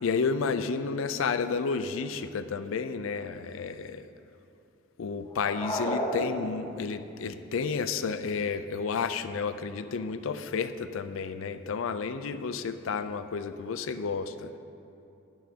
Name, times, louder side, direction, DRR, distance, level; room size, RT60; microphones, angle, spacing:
voice 1, 0.0-4.1 5.0-14.6, left 5 dB, 70° left, 11 dB, 0.4 m, -31 dB
sound 1, 5.3-7.0, equal, 25° left, 1.1 m, -32 dB
11.5 x 10.5 x 2.8 m, 2.8 s
head